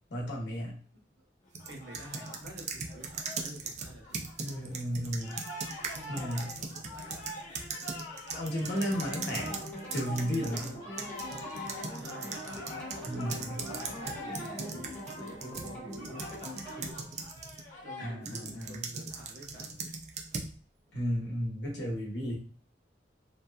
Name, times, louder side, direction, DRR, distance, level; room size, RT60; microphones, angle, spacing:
voice 1, 0.1-0.8 4.4-5.4 6.1-6.5 7.8-7.9 8.3-9.5 9.9-10.7 13.0-13.6 18.0-18.9 20.9-22.4, equal, 75° left, -3 dB, 0.9 m, -34 dB
sound 1, 1.5-4.7 5.0-18.2, left 1 dB, 40° left, 0.7 m, -46 dB
sound 2, 1.5-10.7 11.0-17.7 18.3-20.5, right 4 dB, 40° right, 0.3 m, -40 dB
voice 2, 1.7-4.3 5.9-7.5 11.9-17.3 17.8-19.9, right 1 dB, 85° right, -1 dB, 0.9 m, -49 dB
sound 3, 8.7-16.9, equal, 10° left, 1.0 m, -43 dB
2.6 x 2.2 x 2.3 m, 0.41 s
head